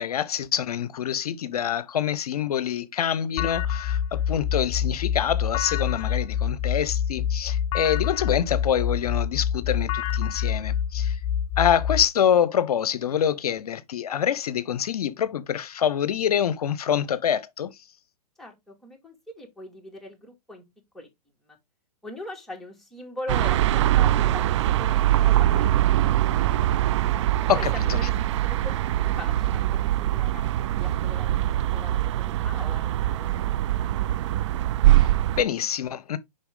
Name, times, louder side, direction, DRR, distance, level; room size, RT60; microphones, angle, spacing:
voice 1, 0.0-11.2 11.6-17.8 27.5-28.0 34.9-36.2, left 9 dB, 70° left, 0.7 m, -26 dB
sound 1, 3.4-12.1, left 9 dB, 25° left, 0.5 m, -26 dB
voice 2, 18.4-20.6 20.9-21.1 21.4-21.6 22.0-27.0 27.6-28.1 28.4-34.3, left 1 dB, ahead, 2.4 m, -42 dB
sound 2, 23.3-35.4, right 13 dB, 45° right, 0.4 m, -22 dB
6.8 x 5.5 x 3.8 m
hypercardioid pair, 125°, 20 cm